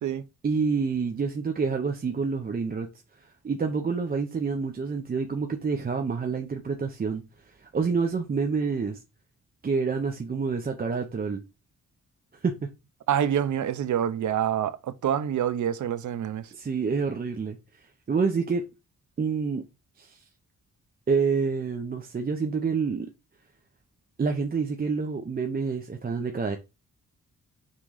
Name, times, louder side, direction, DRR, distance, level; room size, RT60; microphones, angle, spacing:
voice 1, 0.4-2.9 3.4-9.0 9.6-11.4 12.4-12.7 16.5-18.6 19.2-19.6 20.0-20.2 21.1-23.1 24.2-26.6, right 5 dB, 30° right, 0.7 m, -28 dB
voice 2, 13.1-16.5, right 9 dB, 70° right, 0.7 m, -27 dB
5.6 x 3.7 x 4.8 m
wide cardioid pair, 150°, 31 cm